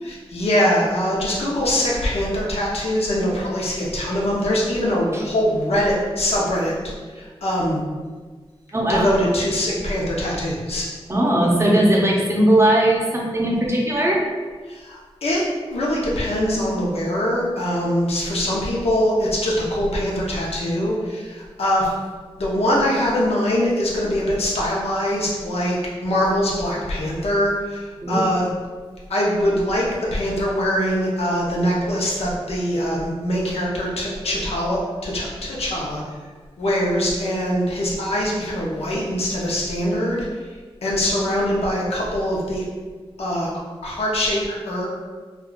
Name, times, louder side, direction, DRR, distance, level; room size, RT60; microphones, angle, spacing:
voice 1, 0.0-7.8 8.9-10.9 14.7-15.4 15.7-21.9 22.4-28.5 29.1-36.0 36.6-42.6 43.2-43.5 43.8-44.9, equal, 80° left, -4 dB, 0.7 m, -23 dB
voice 2, 8.7-9.0 11.1-14.2 28.0-28.2, right 1 dB, 25° right, -3 dB, 0.6 m, -18 dB
3.5 x 2.3 x 2.3 m, 1.4 s
wide cardioid pair, 95°, 10 cm